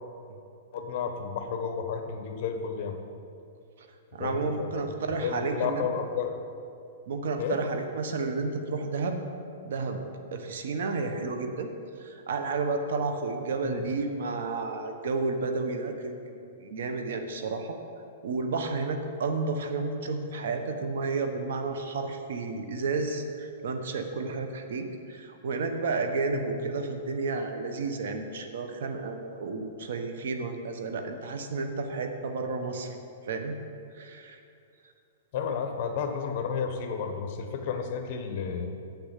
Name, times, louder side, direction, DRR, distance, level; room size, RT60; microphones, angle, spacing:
voice 1, 0.7-3.0 4.2-4.9 5.2-6.3 7.4-7.6 13.6-13.8 26.3-26.6 35.3-38.7, left 6 dB, 45° left, 5 dB, 1.2 m, -32 dB
voice 2, 4.1-5.9 7.1-9.2 9.6-10.0 10.3-11.7 12.0-17.8 18.2-33.0 33.3-33.5 33.9-34.4, right 3 dB, 70° right, 6 dB, 1.2 m, -31 dB
8.0 x 6.9 x 8.1 m, 2.5 s
hypercardioid pair, 150°, 0 cm